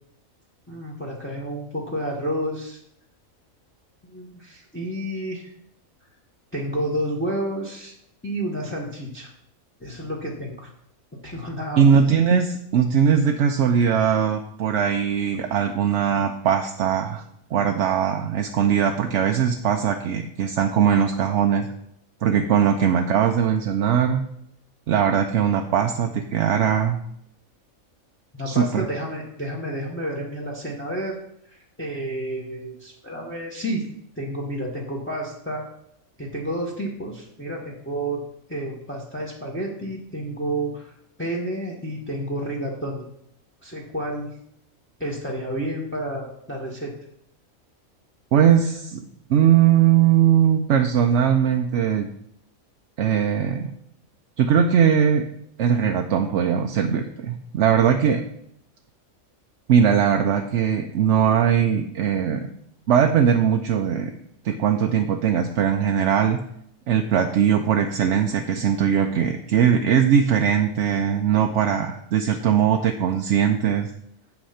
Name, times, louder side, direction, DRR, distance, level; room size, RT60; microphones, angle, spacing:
voice 1, 0.7-2.8 4.1-5.5 6.5-7.9 8.2-9.3 9.8-10.7 11.2-12.0 28.4-31.2 31.4-33.8 34.1-35.6 36.2-38.2 38.5-40.9 41.2-43.0 43.6-44.3 45.0-46.9, right 1 dB, 10° left, -3 dB, 1.2 m, -30 dB
voice 2, 11.8-17.2 17.5-21.7 22.2-24.2 24.9-27.0 28.5-28.9 48.3-49.0 49.3-52.1 53.0-53.7 54.4-55.3 55.6-58.2 59.7-62.5 62.9-64.1 64.4-66.4 66.9-73.9, right 8 dB, 65° right, 5 dB, 0.9 m, -20 dB
7.9 x 5.9 x 5.7 m, 0.74 s
omnidirectional pair, 1.4 m